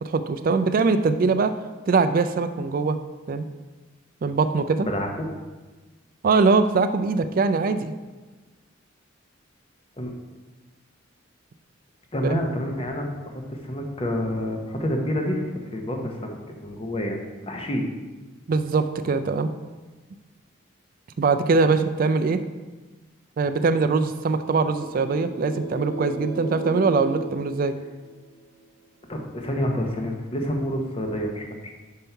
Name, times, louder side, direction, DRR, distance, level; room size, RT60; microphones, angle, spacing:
voice 1, 0.0-1.5 1.9-3.0 3.3-3.5 4.2-4.9 6.2-7.9 12.2-12.4 18.5-19.5 21.2-22.4 23.4-27.7, right 4 dB, 45° right, 10 dB, 0.3 m, -22 dB
voice 2, 4.8-5.3 10.0-10.1 12.1-15.4 15.7-17.8 29.1-31.7, equal, 30° left, 2 dB, 0.8 m, -28 dB
sound 1, 24.5-28.4, right 2 dB, 85° left, 2.1 m, -34 dB
5.6 x 5.3 x 4.5 m, 1.3 s
head